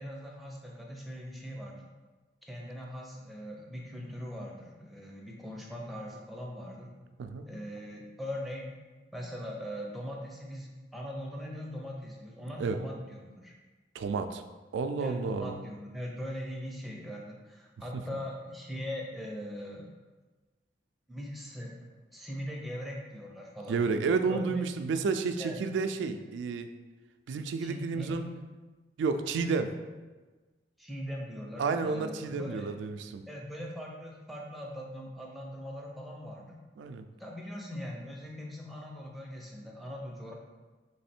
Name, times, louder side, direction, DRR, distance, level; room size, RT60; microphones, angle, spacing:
voice 1, 0.0-1.8 2.4-6.9 7.5-8.7 9.1-13.5 15.0-19.9 21.1-23.8 24.3-24.6 25.4-25.6 27.6-28.1 30.8-32.7 33.1-36.6 37.2-40.3, equal, ahead, -2 dB, 0.5 m, -41 dB
voice 2, 13.9-14.4 14.7-15.6 17.9-18.0 23.7-26.7 27.3-28.3 29.0-29.7 31.6-33.3 36.8-37.1, right 4 dB, 85° right, 8 dB, 0.3 m, -31 dB
3.4 x 3.2 x 4.3 m, 1.3 s
head